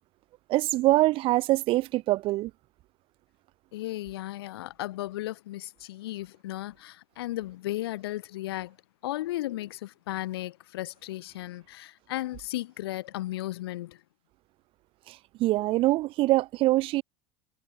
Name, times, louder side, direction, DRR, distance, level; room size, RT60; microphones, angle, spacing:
voice 1, 0.5-2.5 15.1-17.0, right 18 dB, 45° right, 0.6 m, -24 dB
voice 2, 3.7-8.8 9.0-14.0, left 16 dB, 85° left, 1.9 m, -35 dB
supercardioid pair, 125°, 13 cm